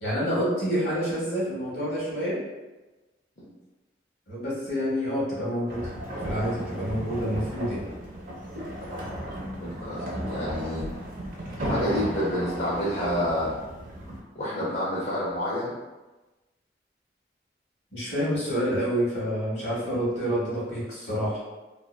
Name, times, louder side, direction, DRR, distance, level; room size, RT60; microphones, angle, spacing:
voice 1, 0.0-2.4 4.3-5.9 6.2-7.9 17.9-21.4, equal, 65° left, -8 dB, 1.1 m, -28 dB
sound 1, 5.7-14.2, equal, 45° right, 0.5 m, -34 dB
voice 2, 9.6-10.8 11.6-13.5 14.4-15.7, equal, 45° left, -9 dB, 0.5 m, -29 dB
2.7 x 2.1 x 2.2 m, 1.1 s
head